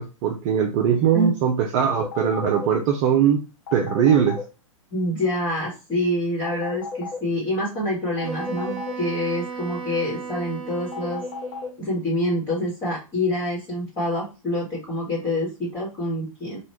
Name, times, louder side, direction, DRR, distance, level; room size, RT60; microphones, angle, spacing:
voice 1, 0.0-3.4 3.7-4.4, right 8 dB, 35° right, 2 dB, 0.5 m, -21 dB
sound 1, 1.9-2.7 3.7-4.4 6.4-7.2 8.2-8.9 10.9-11.7, left 5 dB, 45° left, 1.1 m, -32 dB
voice 2, 4.9-11.2 11.8-16.6, left 1 dB, 25° left, -6 dB, 1.3 m, -26 dB
Wind instrument woodwind instrument, 8.2-11.8, right 6 dB, 55° right, 1.0 m, -35 dB
3.0 x 2.3 x 3.1 m, 0.31 s
figure-of-eight pair, 110°, 18 cm